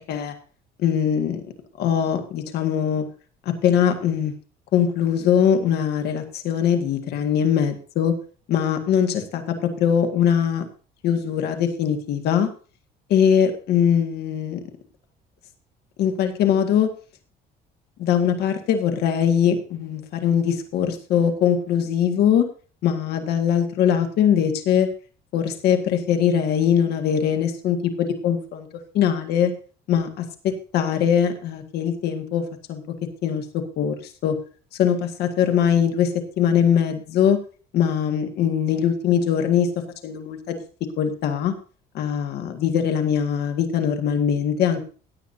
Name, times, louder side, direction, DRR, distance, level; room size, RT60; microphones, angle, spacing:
voice 1, 0.8-1.5 1.8-3.1 3.4-4.3 4.7-8.1 8.5-10.7 11.0-12.5 13.1-14.6 16.0-16.9 18.0-22.5 22.8-24.9 25.3-28.7 28.9-29.5 29.9-32.8 33.2-34.0 34.2-34.4 34.8-37.4 37.7-40.6 41.0-41.5 41.9-44.8, left 8 dB, 75° left, 6 dB, 1.7 m, -21 dB
16.5 x 9.5 x 2.8 m, 0.39 s
cardioid pair, 110°, 17 cm